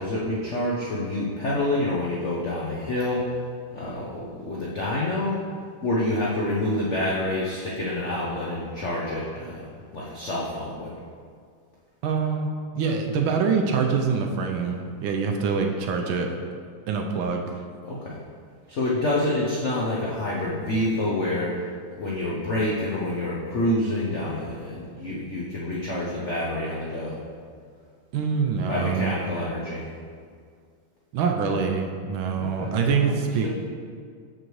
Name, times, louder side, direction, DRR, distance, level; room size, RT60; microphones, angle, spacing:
voice 1, 0.0-3.3 3.7-5.4 5.8-9.7 9.9-10.9 17.8-18.2 18.7-21.6 22.0-27.2 28.6-29.9 32.4-32.7 33.0-33.5, left 1 dB, 90° left, -5 dB, 0.6 m, -27 dB
voice 2, 12.0-12.5 12.7-16.3 16.9-17.4 28.1-29.2 31.1-33.5, right 5 dB, 75° right, 3 dB, 1.3 m, -25 dB
6.6 x 6.3 x 3.1 m, 2.1 s
omnidirectional pair, 2.3 m